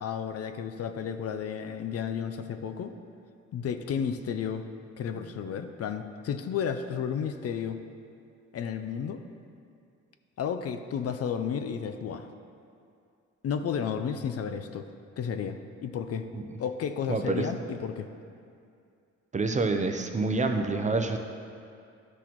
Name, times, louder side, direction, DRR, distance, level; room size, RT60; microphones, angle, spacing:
voice 1, 0.0-2.9 3.5-4.6 5.0-7.8 8.5-9.2 10.4-12.3 13.4-14.9 15.2-16.3 16.6-18.1, left 7 dB, 55° left, 8 dB, 0.5 m, -32 dB
voice 2, 17.1-17.5 19.3-21.2, right 3 dB, 25° right, 5 dB, 0.6 m, -27 dB
11.5 x 6.1 x 3.0 m, 2.4 s
cardioid pair, 90°, 30 cm